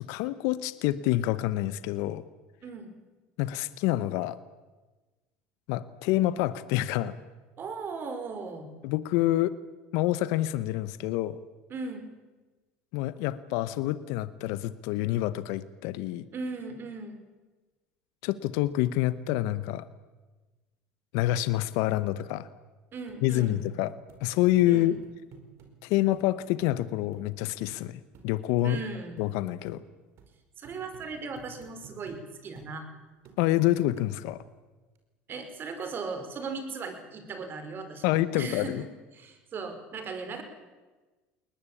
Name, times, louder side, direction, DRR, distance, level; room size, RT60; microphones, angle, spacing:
voice 1, 0.0-2.2 3.4-4.4 5.7-7.1 8.8-9.5 9.9-11.4 12.9-16.3 18.2-19.9 21.1-22.5 23.2-23.9 24.2-25.0 25.8-28.8 29.2-29.8 33.4-34.4 38.0-38.8, left 15 dB, 70° left, 15 dB, 1.0 m, -27 dB
voice 2, 7.6-8.7 11.7-12.1 16.3-17.1 22.9-23.6 24.7-24.9 28.6-29.2 30.6-32.9 35.3-38.9 39.1-40.4, right 4 dB, 40° right, 8 dB, 5.0 m, -38 dB
sound 1, 23.1-23.2 23.6-23.7 24.1-24.2 24.6-25.7 26.1-26.3 26.6-26.7 27.1-27.2 27.6-27.8 28.1-28.3 28.6-28.8 29.2-29.3 29.7-29.8 30.2-30.3 30.6-32.2 32.6-32.7 33.3-33.6 34.0-34.4 35.0-35.1, right 7 dB, 60° right, 4.6 m, -52 dB
21.5 x 19.5 x 8.6 m, 1.2 s
supercardioid pair, 90°, 5 cm